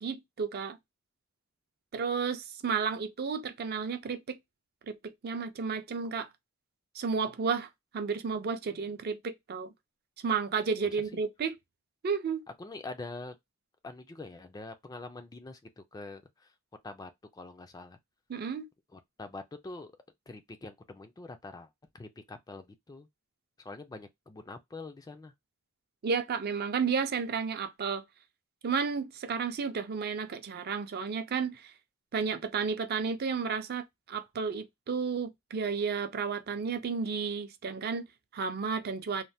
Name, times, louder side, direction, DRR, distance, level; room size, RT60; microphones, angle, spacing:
voice 1, 0.0-0.8 1.9-4.4 4.9-6.3 6.9-9.7 10.2-11.6 12.0-12.4 18.3-18.7 26.0-28.0 28.6-31.7 32.1-39.2, right 5 dB, 50° right, 0.4 m, -32 dB
voice 2, 12.6-13.4 13.8-16.5 16.8-18.0 18.9-19.9 20.3-21.7 21.9-23.1 23.6-25.3, left 3 dB, 20° left, 0.3 m, -45 dB
3.1 x 2.1 x 2.6 m
head